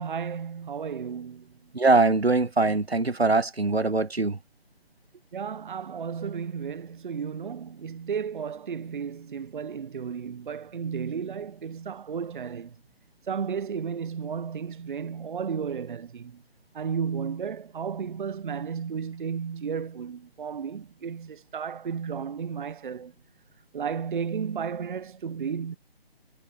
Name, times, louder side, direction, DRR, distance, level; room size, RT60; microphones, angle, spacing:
voice 1, 0.0-1.5 5.3-12.7 13.3-16.4 16.7-23.1 23.7-25.8, right 6 dB, 55° right, 0.8 m, -33 dB
voice 2, 1.7-4.4, right 3 dB, 90° right, 1.2 m, -22 dB
figure-of-eight pair, 145°, 30 cm